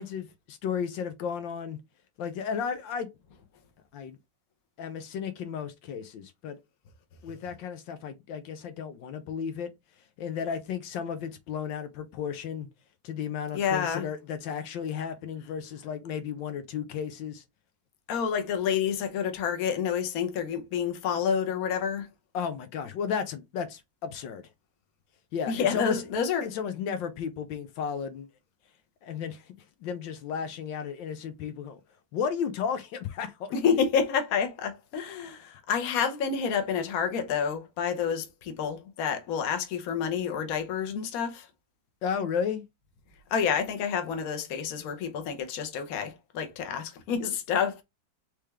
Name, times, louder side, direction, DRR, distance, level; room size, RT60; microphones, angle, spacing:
voice 1, 0.0-1.8 2.2-3.1 3.9-4.2 4.8-6.6 7.2-9.7 10.2-12.7 13.0-17.4 22.3-24.4 25.3-26.1 26.4-28.3 29.0-29.5 29.8-31.8 32.1-33.5 42.0-42.6, left 7 dB, 80° left, 1.4 m, -33 dB
voice 2, 13.5-14.1 18.1-22.1 25.5-26.5 33.5-41.5 43.3-47.8, left 7 dB, 55° left, 1.2 m, -29 dB
4.3 x 3.3 x 3.5 m
omnidirectional pair, 2.1 m